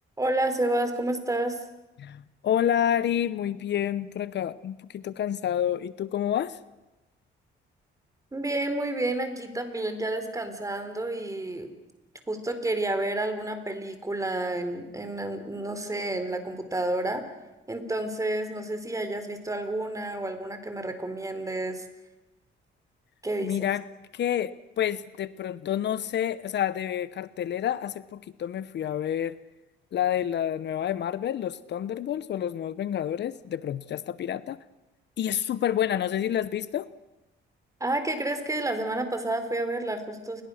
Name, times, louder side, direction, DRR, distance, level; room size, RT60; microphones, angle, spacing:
voice 1, 0.2-1.6 8.3-11.7 12.3-17.2 17.7-21.9 23.2-23.5 37.8-40.4, right 2 dB, 15° right, 8 dB, 4.1 m, -30 dB
voice 2, 2.0-6.6 23.4-23.8 24.1-29.4 29.9-34.6 35.2-36.9, left 10 dB, 60° left, 16 dB, 0.9 m, -29 dB
29.0 x 22.0 x 6.5 m, 1.0 s
cardioid pair, 90°, 20 cm